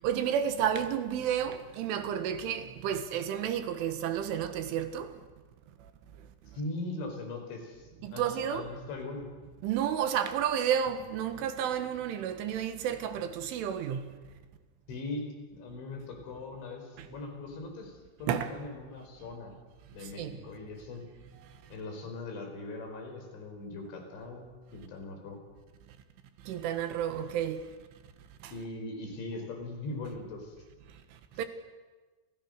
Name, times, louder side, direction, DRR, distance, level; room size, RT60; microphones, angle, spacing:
voice 1, 0.0-5.1 8.0-8.7 9.6-14.0 17.0-17.1 18.3-18.6 20.0-20.4 26.5-27.7 28.4-28.5 31.4-31.5, right 9 dB, 85° right, 4.1 m, -31 dB
voice 2, 6.5-8.2 8.5-9.3 14.9-19.6 19.9-21.1 21.7-25.4 28.5-30.6, left 2 dB, 70° left, 7.0 m, -40 dB
29.5 x 28.0 x 6.6 m
omnidirectional pair, 5.5 m